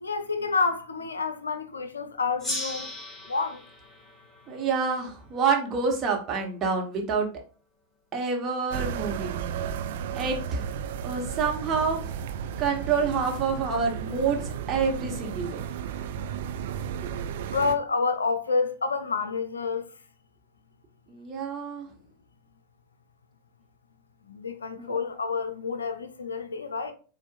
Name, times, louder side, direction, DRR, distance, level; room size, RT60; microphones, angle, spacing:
voice 1, 0.0-2.9 3.3-3.6 17.5-19.8 24.3-26.9, left 4 dB, 75° left, 0.5 m, -28 dB
Gong, 2.4-5.5, left 1 dB, 15° left, 2.4 m, -37 dB
voice 2, 4.5-7.3 8.1-9.4 10.1-10.7 11.0-12.1 12.6-15.6 17.0-17.1 21.1-21.9 24.8-25.0, right 5 dB, 30° right, 1.2 m, -27 dB
sound 1, 8.7-17.7, right 8 dB, 55° right, 0.4 m, -34 dB
7.2 x 2.5 x 2.5 m
figure-of-eight pair, 90°, 0 cm